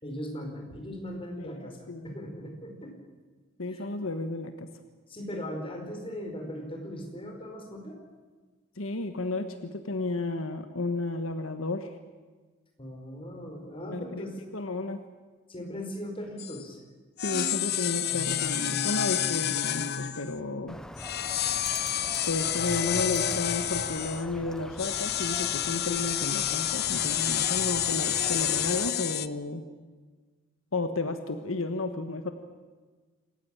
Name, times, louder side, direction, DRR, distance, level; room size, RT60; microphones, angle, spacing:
voice 1, 0.0-2.9 3.7-3.9 5.1-8.0 12.8-14.4 15.5-16.8, equal, 25° left, 2 dB, 4.7 m, -39 dB
voice 2, 1.4-2.1 3.6-4.7 8.8-11.9 13.9-14.2 14.5-15.0 17.2-20.8 22.3-29.6 30.7-32.3, left 2 dB, 80° left, 8 dB, 1.4 m, -32 dB
sound 1, 16.4-16.6 17.2-20.4 21.0-24.2 24.8-29.3, left 11 dB, 50° left, 0.8 m, -29 dB
Bird, 20.7-28.9, equal, 5° left, 0.6 m, -43 dB
27.0 x 15.0 x 9.0 m, 1.4 s
head